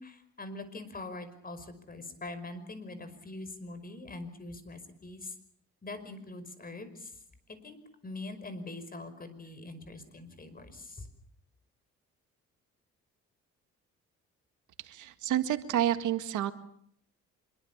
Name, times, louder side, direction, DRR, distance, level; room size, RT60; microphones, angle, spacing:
voice 1, 0.0-5.3 5.8-7.1 7.5-7.8 8.0-11.1, left 2 dB, 30° left, 11 dB, 5.4 m, -43 dB
voice 2, 14.8-16.5, right 11 dB, 80° right, 10 dB, 1.8 m, -29 dB
26.0 x 23.0 x 7.3 m, 0.68 s
cardioid pair, 90°, 30 cm